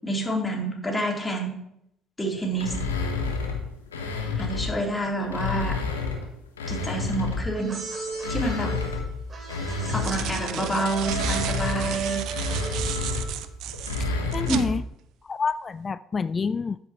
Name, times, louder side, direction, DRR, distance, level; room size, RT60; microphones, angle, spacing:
voice 1, 0.0-1.6 2.2-2.9 4.4-5.8 6.7-7.9 8.3-8.8 9.9-12.3 14.5-14.6, right 1 dB, 15° left, -2 dB, 3.7 m, -28 dB
sound 1, 2.6-4.8 5.2-7.6 8.1-14.8, left 3 dB, 85° left, 1.3 m, -30 dB
sound 2, 7.5-13.4, right 4 dB, 35° right, 2.9 m, -35 dB
sound 3, 8.6-8.7 9.7-14.7, right 12 dB, 60° right, 0.6 m, -34 dB
voice 2, 14.0-14.8 15.2-16.8, left 5 dB, 35° left, 15 dB, 0.4 m, -28 dB
13.0 x 7.6 x 3.2 m, 0.76 s
hypercardioid pair, 55°, 0 cm